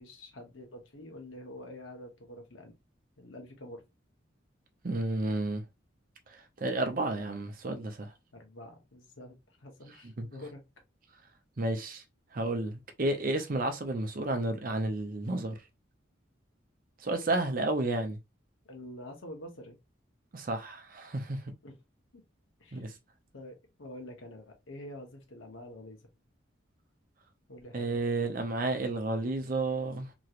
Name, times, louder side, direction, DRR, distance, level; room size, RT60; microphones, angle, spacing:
voice 1, 0.0-2.7 3.2-3.8 8.3-10.6 18.6-19.8 21.6-21.8 22.1-22.2 22.6-22.8 23.3-26.0 27.5-28.0, left 1 dB, 80° left, 1.0 m, -47 dB
voice 2, 4.8-5.6 6.3-8.1 10.2-10.3 11.6-12.0 12.3-15.6 17.0-18.2 20.3-21.4 22.7-22.9 27.7-30.1, right 2 dB, 45° right, 0.6 m, -31 dB
3.0 x 2.9 x 2.4 m
head